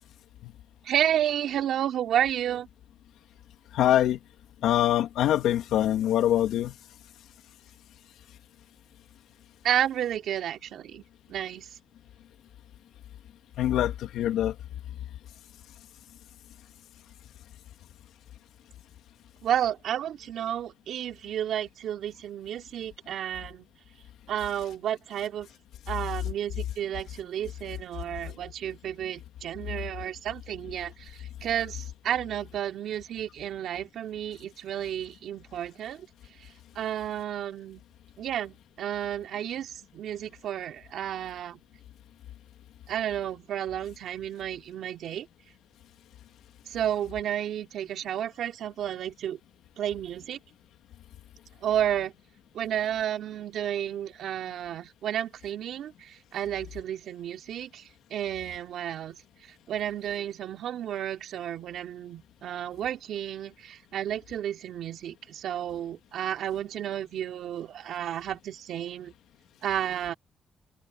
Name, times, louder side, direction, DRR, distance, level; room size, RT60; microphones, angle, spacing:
voice 1, 0.8-2.7 9.6-11.0 11.3-11.7 19.4-23.7 24.3-25.5 25.9-31.1 31.4-36.0 36.8-37.8 38.2-41.6 42.9-45.3 46.7-49.4 49.8-50.4 51.6-52.1 52.5-59.2 59.7-69.1 69.6-70.1, right 10 dB, 80° right, 3.5 m, -31 dB
voice 2, 3.7-4.2 4.6-6.7 13.6-14.5, left 12 dB, 85° left, 2.7 m, -24 dB
open air
cardioid pair, 65°, 0 cm